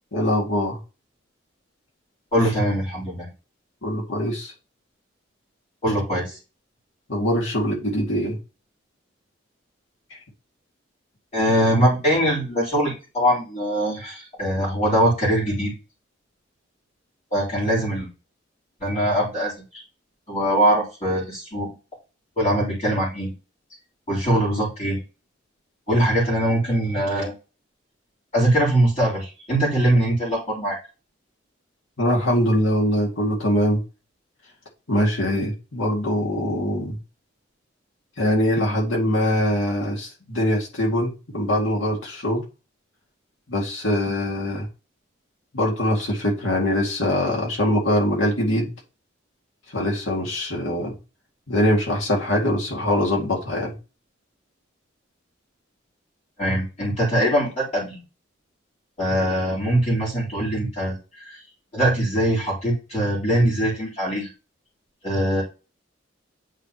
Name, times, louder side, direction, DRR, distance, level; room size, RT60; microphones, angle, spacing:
voice 1, 0.1-0.8 3.8-4.5 7.1-8.4 32.0-33.8 34.9-37.0 38.2-42.4 43.5-44.7 45.5-48.7 49.7-50.9 51.5-53.8, equal, 85° left, 2.1 m, -23 dB
voice 2, 2.3-3.3 5.8-6.4 11.3-15.7 17.3-18.1 18.8-19.8 20.3-21.8 22.4-23.3 24.1-25.0 25.9-27.3 28.3-30.8 56.4-58.0 59.0-61.4 61.7-64.3 65.0-65.4, right 1 dB, 35° left, 3.6 m, -22 dB
8.5 x 5.0 x 3.0 m
head